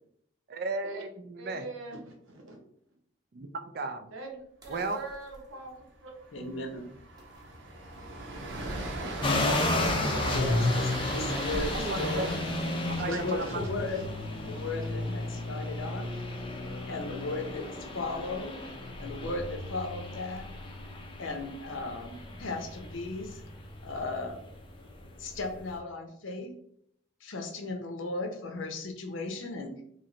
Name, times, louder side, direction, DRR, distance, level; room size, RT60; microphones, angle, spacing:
voice 1, 0.5-1.6 3.3-4.1 4.7-5.0 10.0-10.2 11.7-12.3 12.9-13.6, right 3 dB, 50° right, 8 dB, 0.4 m, -35 dB
voice 2, 1.4-2.6 4.1-5.7 6.0-6.1 8.6-8.7 9.0-9.5 13.0-13.5 13.9-14.0 14.4-14.5, right 2 dB, 85° right, 1 dB, 1.0 m, -44 dB
sound 1, 4.6-5.9 7.2-8.3 10.1-11.2 11.5-12.2 14.5-14.9, equal, 20° right, 0.7 m, -45 dB
Train, 5.1-5.4 5.6-5.8 6.2-16.3, right 2 dB, 65° right, 0.8 m, -40 dB
voice 3, 6.3-6.9 10.3-12.3 13.0-14.2 14.5-16.1 16.9-18.6 19.0-20.5 21.2-23.4 23.8-24.4 25.2-26.5 27.2-29.8, left 3 dB, 75° left, 4 dB, 0.7 m, -36 dB
sound 2, 9.2-25.7, left 2 dB, 25° left, 0.4 m, -33 dB
3.1 x 2.8 x 3.8 m, 0.70 s
head